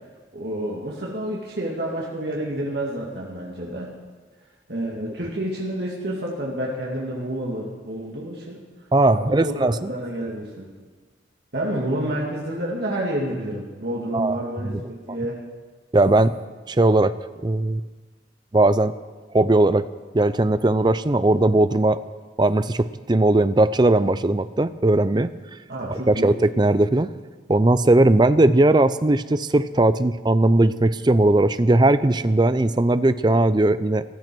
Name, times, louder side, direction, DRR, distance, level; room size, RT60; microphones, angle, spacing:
voice 1, 0.3-3.9 4.7-8.6 9.1-10.7 11.5-15.4 25.7-26.3, right 1 dB, 60° right, -3 dB, 2.3 m, -29 dB
voice 2, 8.9-9.9 14.1-14.4 14.6-14.8 15.9-16.3 16.7-17.1 17.4-17.8 18.5-18.9 19.3-19.8 20.1-22.0 22.4-25.3 25.9-27.1 27.5-34.0, right 2 dB, 25° right, 14 dB, 0.5 m, -18 dB
14.5 x 13.5 x 6.2 m, 1.3 s
head